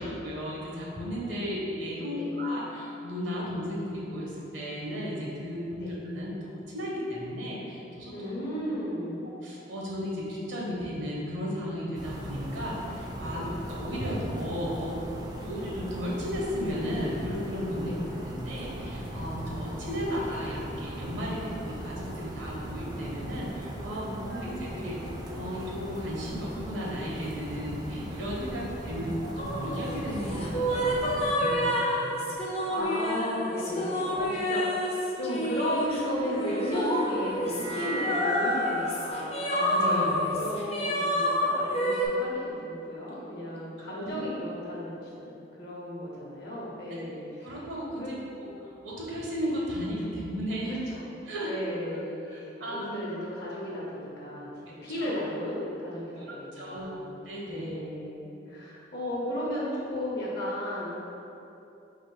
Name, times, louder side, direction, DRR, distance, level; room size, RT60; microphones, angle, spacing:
voice 1, 0.0-8.1 9.4-15.0 15.4-17.9 18.2-25.0 25.3-32.1 39.5-40.2 43.8-44.1 47.0-47.1 47.4-48.1 48.4-50.8 51.2-51.5 52.3-52.9 55.0-55.2 56.3-57.7, equal, 70° right, -4 dB, 0.9 m, -34 dB
voice 2, 8.1-9.3 13.3-13.5 17.8-18.0 24.0-24.9 28.5-29.3 32.7-39.4 39.8-47.5 48.0-48.1 50.7-51.0 51.4-57.1 57.5-60.9, equal, 60° left, -6 dB, 0.9 m, -35 dB
sound 1, 11.9-31.3, right 1 dB, 20° right, 0.4 m, -39 dB
sound 2, 29.4-42.1, equal, 35° left, 0.6 m, -29 dB
sound 3, 35.8-42.2, equal, 90° right, 1.1 m, -39 dB
3.9 x 2.5 x 4.7 m, 2.9 s
head